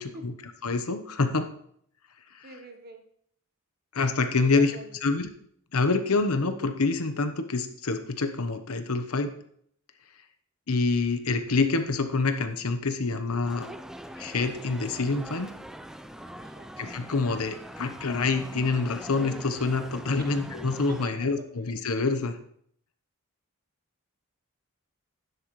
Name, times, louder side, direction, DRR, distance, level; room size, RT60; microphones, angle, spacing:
voice 1, 0.0-1.5 2.4-2.5 3.9-5.3 5.7-9.3 10.7-13.7 14.2-15.5 16.8-22.4, left 3 dB, 85° left, 8 dB, 1.0 m, -27 dB
voice 2, 2.4-3.0 4.4-5.0 16.4-16.7 20.1-20.3 20.9-21.3, right 3 dB, 45° right, 6 dB, 1.2 m, -44 dB
sound 1, 13.4-21.1, equal, ahead, 0.4 m, -42 dB
11.5 x 10.0 x 3.1 m, 0.66 s
head